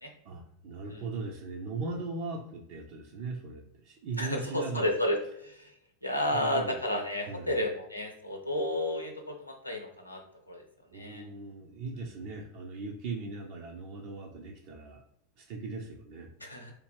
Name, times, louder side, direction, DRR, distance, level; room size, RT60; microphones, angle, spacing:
voice 1, 0.2-4.9 6.3-6.8 7.3-7.6 10.9-15.0 15.4-16.3, right 3 dB, 45° right, 0 dB, 0.4 m, -39 dB
voice 2, 4.2-5.7 6.0-10.2 10.5-10.6 10.9-11.3 16.4-16.7, left 1 dB, 85° left, 2 dB, 0.6 m, -32 dB
3.2 x 2.3 x 3.2 m, 0.72 s
figure-of-eight pair, 85°, 0 cm